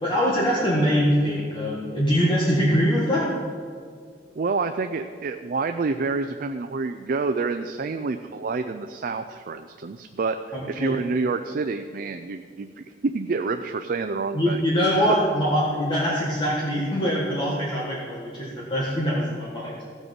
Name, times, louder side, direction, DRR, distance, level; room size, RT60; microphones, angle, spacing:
voice 1, 0.0-3.3 10.5-11.0 14.3-19.7, equal, 30° left, -6 dB, 1.6 m, -23 dB
voice 2, 4.4-14.6, right 4 dB, 55° right, 7 dB, 0.4 m, -28 dB
16.5 x 6.3 x 5.2 m, 2.1 s
head